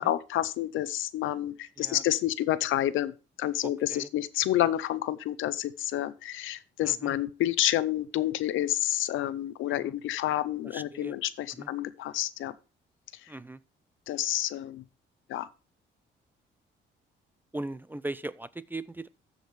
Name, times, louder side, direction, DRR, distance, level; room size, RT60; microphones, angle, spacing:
voice 1, 0.0-3.1 3.4-12.5 13.2-13.3 14.1-14.8 15.3-15.5, left 13 dB, 80° left, 0.6 m, -29 dB
voice 2, 3.6-4.1 6.8-7.1 9.7-9.9 10.6-11.1 11.5-11.7 13.3-13.6 17.5-19.1, right 2 dB, 10° right, 0.4 m, -39 dB
14.0 x 5.0 x 3.2 m
cardioid pair, 90°, 20 cm